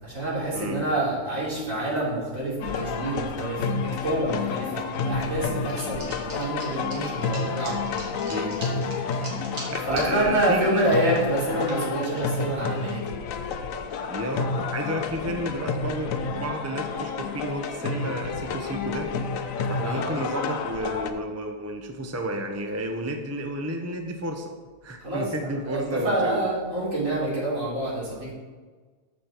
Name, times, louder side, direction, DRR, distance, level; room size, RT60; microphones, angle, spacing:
voice 1, 0.0-7.9 9.0-9.1 9.9-13.1 19.8-20.3 25.0-28.3, right 1 dB, 55° right, -8 dB, 4.0 m, -27 dB
sound 1, 2.6-21.1, left 5 dB, 65° left, 1.0 m, -30 dB
sound 2, 5.7-10.1 10.5-12.4, right 2 dB, 80° right, 2.6 m, -41 dB
voice 2, 8.3-8.6 9.1-9.2 9.7-10.9 12.4-12.5 14.1-19.1 19.7-24.5 24.8-26.5, right 1 dB, 20° right, 4 dB, 0.4 m, -32 dB
14.0 x 5.3 x 4.5 m, 1.4 s
omnidirectional pair, 1.7 m